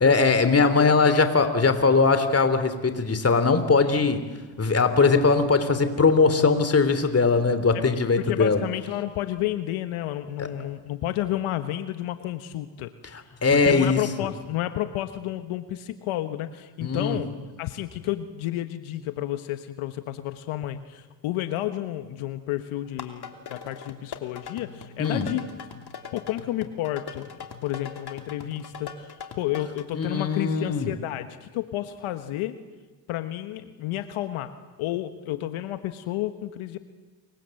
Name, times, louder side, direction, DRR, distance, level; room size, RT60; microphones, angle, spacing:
voice 1, 0.0-4.3 4.6-8.6 13.4-14.0 16.8-17.2 25.0-25.3 29.9-30.9, left 4 dB, 30° left, 10 dB, 3.2 m, -20 dB
voice 2, 0.8-1.3 7.7-7.8 8.2-12.9 13.5-17.3 17.6-25.4 26.1-32.6 33.1-34.5 34.8-36.8, left 14 dB, 80° left, 10 dB, 1.4 m, -31 dB
sound 1, 22.8-29.8, left 6 dB, 50° left, 3.0 m, -41 dB
28.0 x 24.0 x 7.8 m, 1.3 s
cardioid pair, 85°, 49 cm